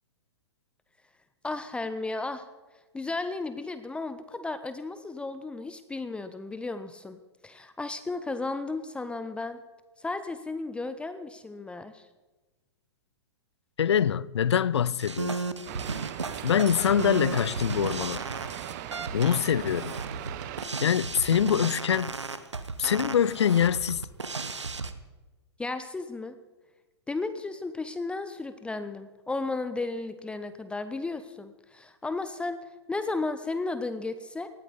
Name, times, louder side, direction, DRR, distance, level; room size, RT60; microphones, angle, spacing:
voice 1, 1.4-2.5 2.9-9.6 10.0-12.1 25.6-26.4 27.1-32.6 32.9-34.5, left 3 dB, 5° left, 0.6 m, -34 dB
voice 2, 13.8-15.4 16.4-18.2 19.1-20.0 20.8-22.1 22.8-24.1, left 8 dB, 75° left, 0.5 m, -24 dB
sound 1, 15.0-24.9, right 4 dB, 85° right, 1.0 m, -34 dB
sound 2, 15.7-20.7, right 12 dB, 40° right, 0.9 m, -39 dB
19.0 x 13.5 x 4.1 m
figure-of-eight pair, 110°, 15 cm